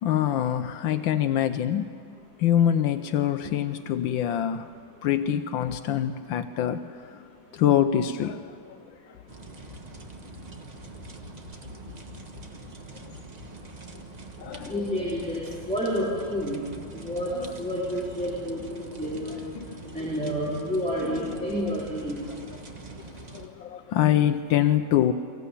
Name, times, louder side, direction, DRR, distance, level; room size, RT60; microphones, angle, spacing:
voice 1, 0.0-1.9 2.4-4.7 5.0-7.3 7.5-8.8 14.4-14.7 17.3-17.5 19.5-19.6 23.3-25.1, left 10 dB, 80° left, 1.4 m, -25 dB
sound 1, 9.3-23.5, right 3 dB, 25° right, 1.1 m, -44 dB
voice 2, 14.7-16.6 16.9-19.4 19.9-22.2, equal, 5° left, 4.0 m, -29 dB
24.0 x 15.0 x 8.5 m
omnidirectional pair, 2.1 m